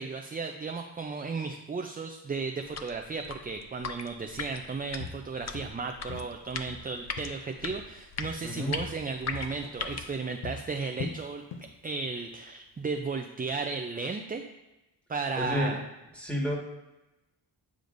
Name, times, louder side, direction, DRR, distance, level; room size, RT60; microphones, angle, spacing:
voice 1, 0.0-11.4 11.8-14.4 15.1-15.8, right 4 dB, 20° right, 4 dB, 0.4 m, -34 dB
sound 1, 2.6-10.2, left 5 dB, 40° left, 0.6 m, -39 dB
Walk footsteps, 4.4-4.6 5.0-6.4 6.7-8.0 8.2-11.8 12.1-12.3 12.8-12.9, left 6 dB, 75° left, 0.7 m, -42 dB
voice 2, 8.4-8.7 15.3-15.8 16.1-16.6, left 1 dB, 5° left, -2 dB, 1.7 m, -30 dB
9.4 x 5.0 x 2.6 m, 1.0 s
cardioid pair, 70°, 43 cm